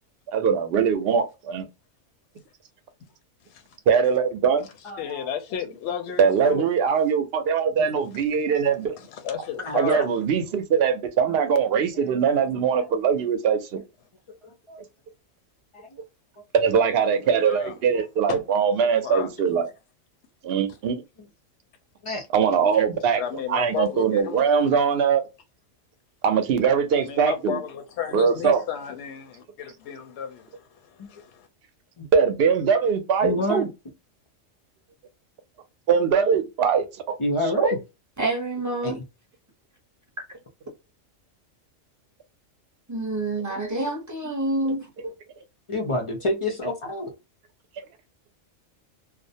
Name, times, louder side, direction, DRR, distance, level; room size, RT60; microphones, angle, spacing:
voice 1, 0.3-1.7 3.9-4.7 6.2-9.0 9.7-13.8 16.5-19.7 20.4-21.0 22.3-23.2 23.5-25.2 26.2-27.6 28.1-28.6 32.1-33.7 35.9-37.2 37.6-37.7 47.8-47.9, right 6 dB, 60° right, 0.7 m, -22 dB
voice 2, 3.4-3.8 5.0-6.7 9.0-10.0 17.3-17.7 18.3-18.4 18.8-19.3 23.1-24.5 26.9-31.5, left 8 dB, 65° left, 0.8 m, -33 dB
voice 3, 4.8-5.3 7.9-8.0 9.6-10.0 12.8-12.9 14.4-14.8 15.7-16.0 17.9-18.0 22.0-22.3 22.7-22.8 31.0-31.1 32.0-32.1 33.2-33.7 37.2-37.8 38.8-39.0 45.7-47.1, left 2 dB, 50° left, 0.3 m, -28 dB
voice 4, 38.2-39.0 42.9-45.1, right 2 dB, 20° right, 0.6 m, -27 dB
2.4 x 2.0 x 2.6 m
omnidirectional pair, 1.3 m